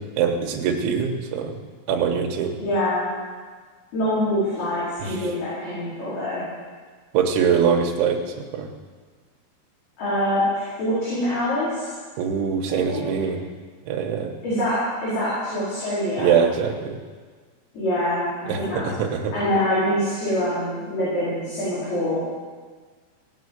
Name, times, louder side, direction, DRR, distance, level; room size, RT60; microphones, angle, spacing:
voice 1, 0.0-1.6 1.9-2.5 5.1-5.2 7.1-8.2 8.5-8.7 12.2-13.4 13.9-14.3 16.2-17.0 18.5-19.3, right 7 dB, 90° right, 2 dB, 3.6 m, -23 dB
voice 2, 2.6-3.1 3.9-6.4 10.0-11.8 12.7-13.0 14.4-16.3 17.7-18.9 19.3-22.2, left 1 dB, 55° left, -12 dB, 6.8 m, -25 dB
18.0 x 7.6 x 8.1 m, 1.5 s
omnidirectional pair, 5.3 m